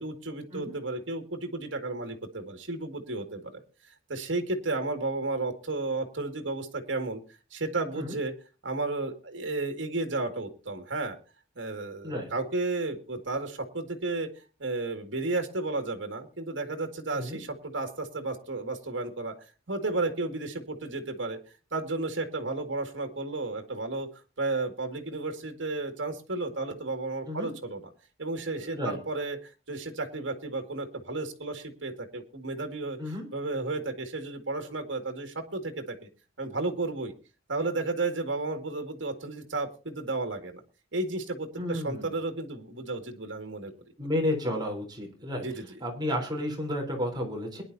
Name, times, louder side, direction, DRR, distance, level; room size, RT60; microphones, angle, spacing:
voice 1, 0.0-3.6 3.9-7.2 7.5-8.3 8.6-11.2 11.6-14.3 14.6-19.3 19.7-21.4 21.7-24.1 24.4-27.8 28.2-33.0 33.3-36.1 36.4-37.1 37.5-40.6 40.9-43.7 45.4-45.8, right 2 dB, 80° right, 6 dB, 2.0 m, -33 dB
voice 2, 28.6-29.0 33.0-33.3 41.6-42.1 44.0-45.5 45.8-47.6, left 1 dB, 25° right, 1 dB, 3.8 m, -32 dB
22.0 x 10.5 x 2.7 m, 0.33 s
head